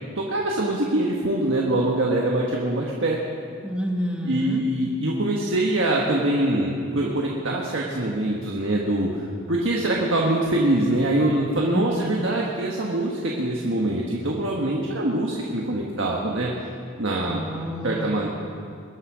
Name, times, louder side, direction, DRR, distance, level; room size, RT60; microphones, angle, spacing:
voice 1, 0.1-3.2 4.2-16.5 17.0-17.4 17.8-18.3, right 1 dB, 65° right, -2 dB, 1.4 m, -24 dB
voice 2, 3.6-4.6 11.7-12.1 17.2-18.2, equal, 5° right, 0 dB, 1.5 m, -29 dB
22.0 x 8.3 x 6.2 m, 2.3 s
head